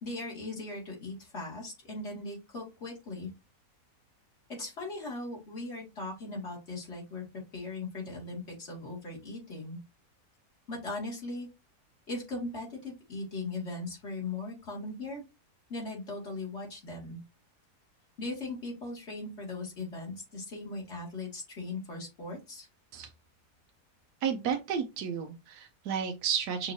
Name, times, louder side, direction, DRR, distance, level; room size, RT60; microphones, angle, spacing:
voice 1, 0.0-3.3 4.5-7.2 7.5-9.8 10.7-11.5 12.1-15.2 15.7-17.2 18.2-22.7, left 2 dB, 45° left, -3 dB, 2.3 m, -39 dB
voice 2, 24.2-26.7, right 7 dB, 80° right, 4 dB, 1.3 m, -32 dB
6.3 x 3.0 x 2.7 m, 0.24 s
omnidirectional pair, 1.7 m